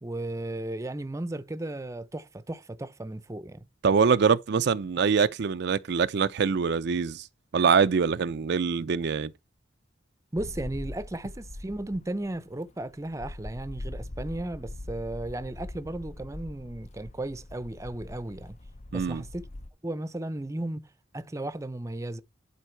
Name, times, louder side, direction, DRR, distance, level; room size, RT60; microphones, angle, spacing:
voice 1, 0.0-3.6 10.3-18.6 18.9-19.5 19.8-20.9 21.1-22.2, right 1 dB, 15° right, 0.6 m, -35 dB
voice 2, 3.8-7.2 7.5-9.3 18.9-19.2, right 5 dB, 60° right, 0.4 m, -24 dB
sound 1, 10.4-19.7, left 1 dB, 35° left, 0.5 m, -42 dB
11.0 x 4.6 x 4.5 m
head